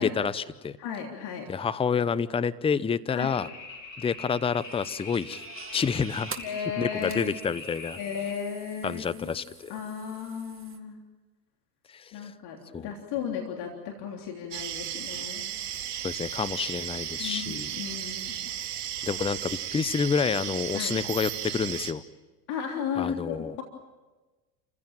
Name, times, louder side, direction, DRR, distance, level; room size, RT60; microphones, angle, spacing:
voice 1, 0.0-0.8 1.5-3.5 4.0-5.4 5.7-6.4 6.8-8.0 8.8-9.7 11.9-12.3 12.7-12.9 16.0-17.7 19.0-22.0 23.0-23.6, left 6 dB, 10° left, 15 dB, 0.7 m, -28 dB
voice 2, 0.8-1.5 3.1-3.4 6.4-7.4 8.0-9.4 9.7-11.0 12.1-15.5 17.2-18.5 20.7-20.9 22.5-23.6, left 7 dB, 50° left, 1 dB, 3.5 m, -35 dB
sound 1, 3.2-8.3, left 3 dB, 90° left, 3.5 m, -43 dB
sound 2, 4.4-10.8, right 6 dB, 25° right, 2.4 m, -46 dB
sound 3, 14.5-21.9, right 10 dB, 60° right, 2.4 m, -35 dB
29.0 x 16.0 x 9.0 m, 1.2 s
hypercardioid pair, 90°, 50 cm